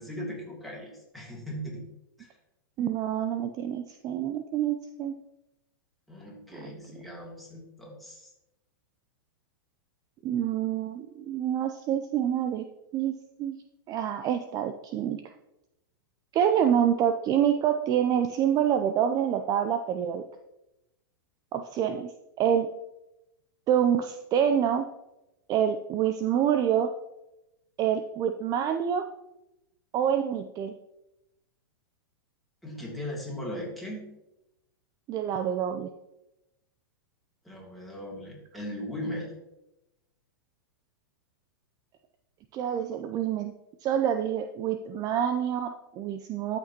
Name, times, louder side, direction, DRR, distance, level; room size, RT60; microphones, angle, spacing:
voice 1, 0.0-1.8 2.2-2.3 6.1-8.3 32.6-34.0 37.4-39.3, equal, ahead, -4 dB, 2.8 m, -38 dB
voice 2, 2.8-5.2 10.2-12.6 12.9-13.6 13.9-15.2 16.3-20.2 21.5-22.1 22.4-22.7 23.7-24.9 25.5-26.9 27.8-29.0 29.9-30.7 35.1-35.9 42.5-43.5 43.8-46.6, right 9 dB, 30° right, 7 dB, 0.5 m, -27 dB
13.0 x 5.9 x 2.9 m, 0.91 s
hypercardioid pair, 115°, 12 cm